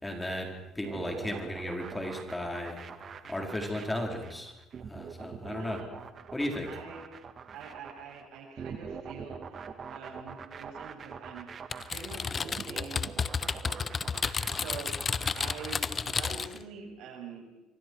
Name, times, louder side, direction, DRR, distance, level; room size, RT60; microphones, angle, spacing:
voice 1, 0.0-2.8 3.3-4.5 4.9-5.8 6.3-6.7, left 1 dB, 10° left, 2 dB, 4.6 m, -35 dB
sound 1, 0.8-16.3, right 6 dB, 45° right, 1.9 m, -44 dB
voice 2, 5.5-5.9 6.7-7.0 7.5-11.5 11.8-13.2 13.6-13.8 14.1-14.9 15.4-17.4, right 5 dB, 75° right, 1 dB, 7.1 m, -45 dB
Typing, 11.7-16.6, left 5 dB, 35° left, 0.8 m, -32 dB
27.0 x 24.0 x 4.8 m, 1.0 s
supercardioid pair, 90°, 0 cm